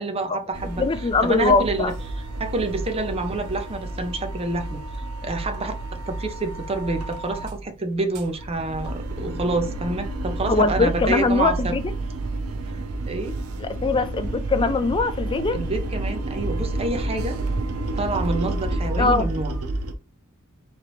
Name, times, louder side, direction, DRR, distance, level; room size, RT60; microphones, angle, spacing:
voice 1, 0.0-0.8 1.2-1.9 2.4-4.8 5.2-5.7 6.1-11.7 13.1-13.4 15.5-17.4 18.0-19.6, right 2 dB, 25° right, 0.6 m, -27 dB
sound 1, 0.5-7.6 7.9-19.9, right 2 dB, 90° right, 0.6 m, -30 dB
voice 2, 0.8-1.9 10.4-11.8 13.6-15.6 19.0-19.3, left 3 dB, 25° left, 0.4 m, -21 dB
3.9 x 3.2 x 3.0 m
head